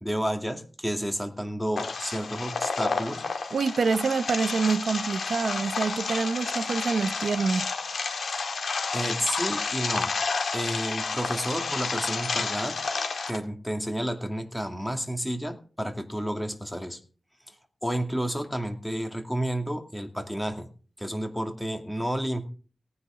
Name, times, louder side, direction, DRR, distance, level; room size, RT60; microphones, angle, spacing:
voice 1, 0.0-3.3 8.9-10.1 10.5-12.8 13.3-17.0 17.5-17.6 17.8-20.7 21.0-22.5, equal, 5° left, 2.4 m, -31 dB
sound 1, 1.8-13.4, left 4 dB, 85° left, 2.0 m, -30 dB
voice 2, 3.5-7.7, right 4 dB, 80° right, 0.8 m, -26 dB
18.0 x 9.7 x 3.8 m
wide cardioid pair, 90°, 0 cm